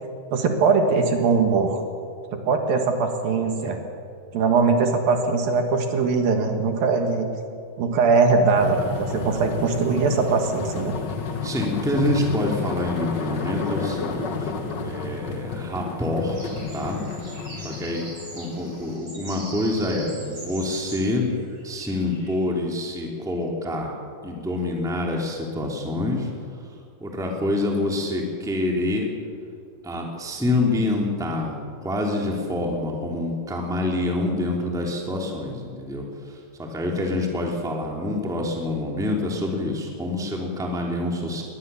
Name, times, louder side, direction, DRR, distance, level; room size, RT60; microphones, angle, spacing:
voice 1, 0.3-1.8 2.4-3.8 4.3-7.3 7.8-11.0, right 4 dB, 65° right, 4 dB, 3.1 m, -21 dB
sound 1, 8.5-19.0, left 4 dB, 85° left, 0.9 m, -31 dB
voice 2, 11.4-14.5 14.8-16.4 16.7-17.0 17.6-18.0 18.3-21.3 21.6-23.9 24.2-26.3 27.0-29.1 29.8-41.4, left 2 dB, ahead, 0 dB, 2.4 m, -26 dB
sound 2, 16.3-22.4, right 2 dB, 35° right, 7.6 m, -42 dB
22.5 x 19.5 x 7.1 m, 2.4 s
omnidirectional pair, 4.6 m